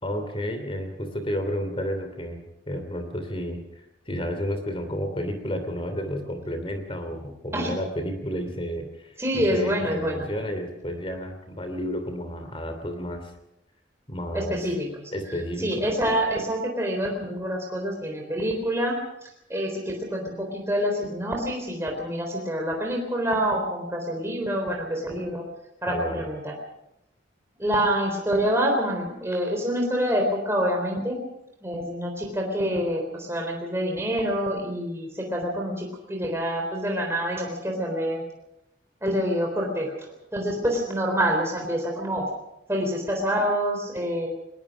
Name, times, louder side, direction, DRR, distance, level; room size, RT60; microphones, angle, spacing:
voice 1, 0.0-13.3 14.1-14.6 15.1-15.8 25.9-26.3, equal, 30° left, 7 dB, 2.9 m, -31 dB
voice 2, 9.2-10.3 14.3-14.9 15.6-25.4 25.8-26.5 27.6-31.2 31.6-38.2 39.0-42.3 42.7-44.3, equal, 15° right, 1 dB, 3.8 m, -27 dB
20.5 x 20.5 x 6.1 m, 0.84 s
head